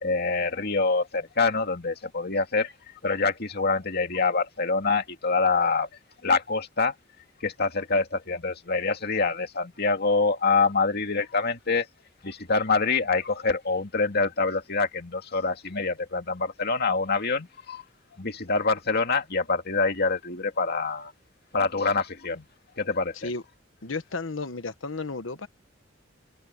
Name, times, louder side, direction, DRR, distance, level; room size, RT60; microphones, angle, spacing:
voice 1, 0.0-2.7 3.0-5.9 6.2-6.9 7.4-11.9 12.2-17.8 18.1-21.1 21.5-22.5 22.8-23.3, left 4 dB, 55° left, 2.4 m, -25 dB
voice 2, 23.8-25.5, left 3 dB, 75° left, 1.2 m, -33 dB
open air
head